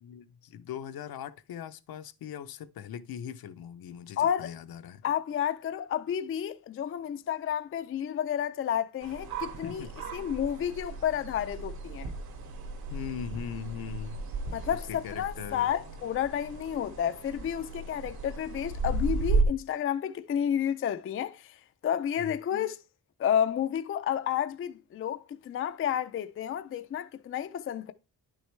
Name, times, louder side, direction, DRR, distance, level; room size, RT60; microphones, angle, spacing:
voice 1, 0.0-5.0 9.6-9.9 12.9-14.2 14.7-15.7 22.2-22.3, left 8 dB, 65° left, 0.7 m, -40 dB
voice 2, 4.2-4.5 5.0-9.8 10.1-12.1 14.5-21.6 21.8-22.8 23.2-27.9, left 9 dB, 35° left, 0.4 m, -31 dB
sound 1, 9.0-19.4, right 3 dB, 65° right, 1.8 m, -35 dB
10.5 x 6.3 x 3.2 m
wide cardioid pair, 175°, 39 cm